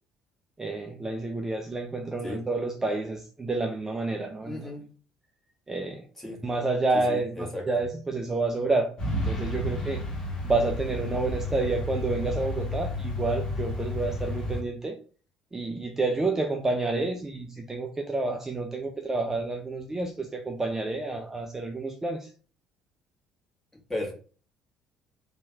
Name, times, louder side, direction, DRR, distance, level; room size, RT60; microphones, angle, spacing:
voice 1, 0.6-4.6 5.7-10.0 10.4-15.0 15.5-22.3, right 3 dB, 15° right, 3 dB, 0.4 m, -29 dB
voice 2, 4.4-4.9 6.2-6.4 7.1-7.6 23.9-24.1, left 1 dB, 10° left, -2 dB, 1.2 m, -35 dB
Truck, 9.0-14.6, left 1 dB, 35° left, 1.1 m, -31 dB
3.0 x 2.2 x 2.7 m, 0.40 s
figure-of-eight pair, 50°, 3 cm